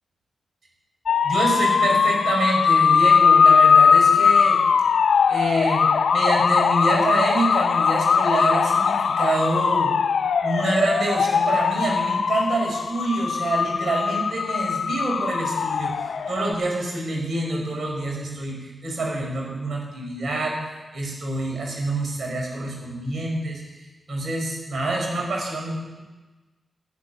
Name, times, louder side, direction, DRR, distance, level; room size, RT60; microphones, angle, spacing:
sound 1, 1.1-16.5, left 6 dB, 75° left, 0.7 m, -20 dB
voice 1, 1.2-4.6 5.3-9.9 10.4-23.8 24.1-26.0, right 2 dB, 65° right, -2 dB, 5.4 m, -26 dB
14.5 x 7.7 x 9.8 m, 1.2 s
cardioid pair, 45°, 0 cm